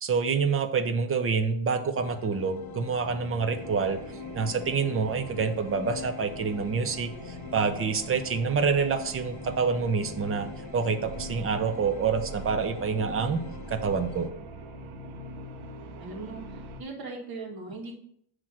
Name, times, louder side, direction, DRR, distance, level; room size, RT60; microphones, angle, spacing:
voice 1, 0.0-4.0 4.3-7.1 7.5-10.5 10.7-13.4 13.7-14.3, right 5 dB, 30° right, 7 dB, 0.6 m, -27 dB
sound 1, 2.0-14.3, left 8 dB, 55° left, 0.6 m, -44 dB
sound 2, 3.5-16.8, right 2 dB, 80° right, 1.1 m, -43 dB
voice 2, 16.0-17.9, right 3 dB, 50° right, 0 dB, 1.7 m, -39 dB
7.3 x 3.2 x 6.2 m, 0.68 s
cardioid pair, 175°, 47 cm